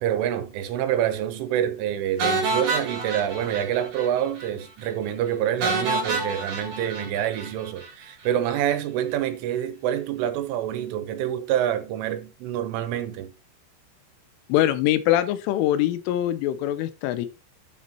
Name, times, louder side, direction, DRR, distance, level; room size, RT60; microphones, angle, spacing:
voice 1, 0.0-13.3, right 10 dB, 80° right, 3.4 m, -27 dB
sound 1, 2.2-4.1 4.4-4.5 4.8-4.9 5.6-7.9, right 3 dB, 45° right, 3.3 m, -28 dB
voice 2, 14.5-17.3, left 13 dB, 80° left, 3.3 m, -23 dB
9.8 x 8.0 x 2.9 m
omnidirectional pair, 5.7 m